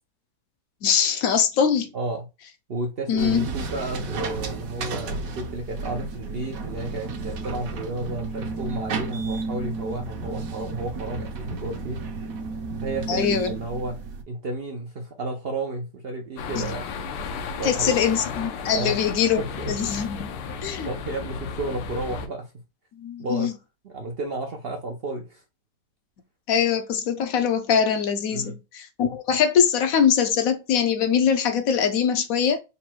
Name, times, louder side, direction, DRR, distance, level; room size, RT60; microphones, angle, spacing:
voice 1, 0.8-1.9 3.1-3.5 13.1-13.5 17.6-19.4 19.7-20.3 20.6-20.9 23.0-23.5 26.5-32.6, left 7 dB, 70° left, 0.8 m, -22 dB
voice 2, 1.9-2.3 2.7-12.0 12.8-14.0 14.3-16.8 17.6-18.0 18.7-19.0 19.4-19.7 20.5-20.6 20.8-22.5 23.2-23.5 23.8-25.4 28.3-28.6, right 2 dB, 80° right, 0.5 m, -32 dB
sound 1, 3.2-14.2, right 4 dB, 65° right, 1.0 m, -33 dB
sound 2, 16.4-22.3, left 5 dB, 85° left, 1.3 m, -34 dB
4.1 x 2.2 x 4.3 m
omnidirectional pair, 1.9 m